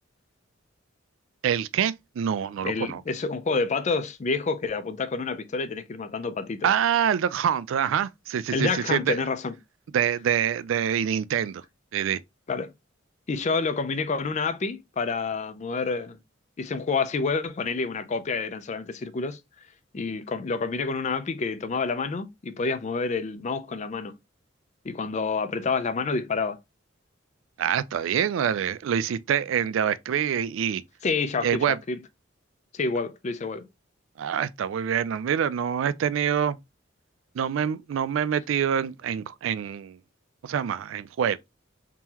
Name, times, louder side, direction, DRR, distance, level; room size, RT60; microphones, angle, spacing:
voice 1, 1.4-3.0 6.6-9.2 9.9-11.6 11.9-12.2 27.6-30.8 31.4-31.8 34.2-36.6 37.3-40.0 40.4-41.4, right 8 dB, 75° right, 0.3 m, -26 dB
voice 2, 2.6-6.7 8.5-9.5 12.5-12.7 13.3-16.2 16.6-19.4 19.9-24.1 24.8-26.6 31.0-32.0 32.7-33.7, left 4 dB, 35° left, 0.4 m, -28 dB
3.7 x 2.9 x 2.8 m
head